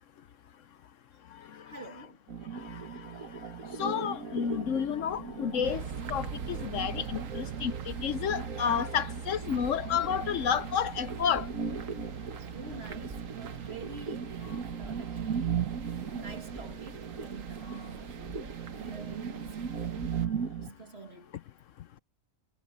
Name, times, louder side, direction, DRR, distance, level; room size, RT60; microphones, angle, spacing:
voice 1, 1.7-2.2 12.5-15.7 16.1-18.3 18.7-20.2 20.6-21.4, right 4 dB, 50° right, 2.7 m, -47 dB
sound 1, 2.3-20.7, right 7 dB, 90° right, 2.1 m, -38 dB
voice 2, 2.5-3.1 3.8-11.5, left 8 dB, 70° left, 1.0 m, -31 dB
sound 2, 5.1-20.3, right 1 dB, 15° right, 2.3 m, -54 dB
sound 3, 5.6-20.3, right 7 dB, 75° right, 1.5 m, -42 dB
omnidirectional pair, 1.4 m